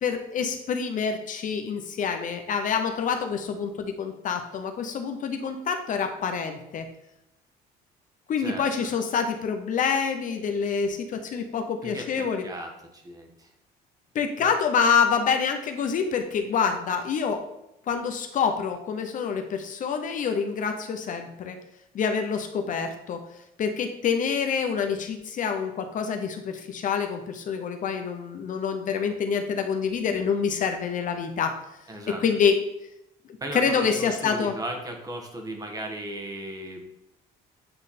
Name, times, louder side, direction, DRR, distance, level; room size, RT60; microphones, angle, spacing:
voice 1, 0.0-6.9 8.3-12.4 14.1-17.4 17.9-21.6 21.9-23.2 23.6-31.6 32.2-32.6 33.5-34.5, left 6 dB, 50° left, 6 dB, 0.7 m, -26 dB
voice 2, 8.4-8.9 11.8-13.5 14.4-14.5 31.9-32.2 33.4-36.8, right 1 dB, 20° right, 3 dB, 1.3 m, -36 dB
8.7 x 3.2 x 4.2 m, 0.86 s
cardioid pair, 110°, 17 cm